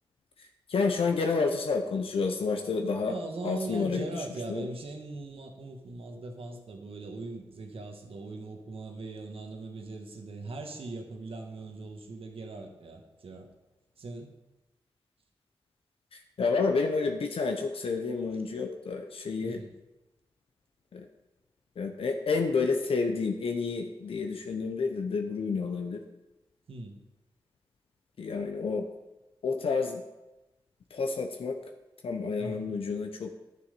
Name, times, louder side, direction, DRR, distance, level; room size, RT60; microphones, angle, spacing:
voice 1, 0.7-3.1 3.4-4.7 16.1-19.6 20.9-21.1 21.8-26.0 28.2-28.9 29.4-30.0 30.9-31.6 32.0-33.3, left 4 dB, 80° left, 5 dB, 0.7 m, -29 dB
voice 2, 3.0-13.5 14.0-14.3 19.4-19.7 26.7-27.0 32.4-32.7, right 3 dB, 80° right, 3 dB, 1.4 m, -40 dB
10.5 x 6.9 x 5.2 m, 1.0 s
cardioid pair, 45°, 10 cm